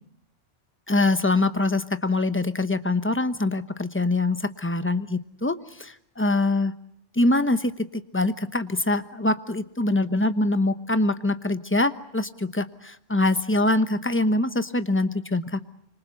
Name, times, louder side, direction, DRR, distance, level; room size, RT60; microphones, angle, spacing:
voice 1, 0.9-6.7 7.1-15.6, left 2 dB, 10° left, 11 dB, 0.9 m, -24 dB
26.0 x 25.5 x 8.1 m, 0.70 s
omnidirectional pair, 1.3 m